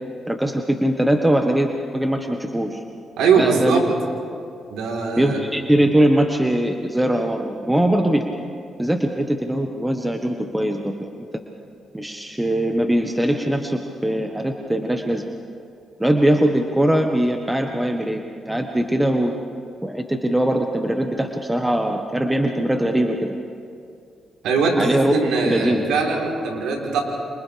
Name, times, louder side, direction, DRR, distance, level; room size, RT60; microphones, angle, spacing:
voice 1, 0.3-2.8 3.4-3.8 5.2-8.3 8.8-11.3 11.9-15.3 16.0-19.3 19.8-23.3 24.8-25.1 25.4-25.8, right 1 dB, 10° right, 3 dB, 1.4 m, -21 dB
voice 2, 3.2-3.8 4.7-5.4 24.4-27.0, right 4 dB, 85° right, -1 dB, 3.8 m, -21 dB
29.0 x 28.0 x 3.5 m, 2.4 s
supercardioid pair, 65°, 0 cm